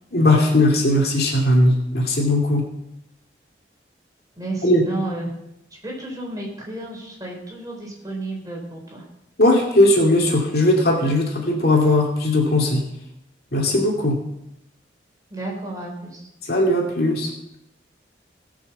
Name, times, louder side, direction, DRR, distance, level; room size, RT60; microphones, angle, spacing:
voice 1, 0.1-2.6 4.6-4.8 9.4-12.8 13.5-14.2 16.4-17.3, left 1 dB, 55° left, 0 dB, 2.5 m, -18 dB
voice 2, 4.4-5.3 5.8-9.0 15.3-16.3, right 2 dB, 20° right, -2 dB, 4.2 m, -32 dB
18.5 x 6.5 x 7.0 m, 0.83 s
head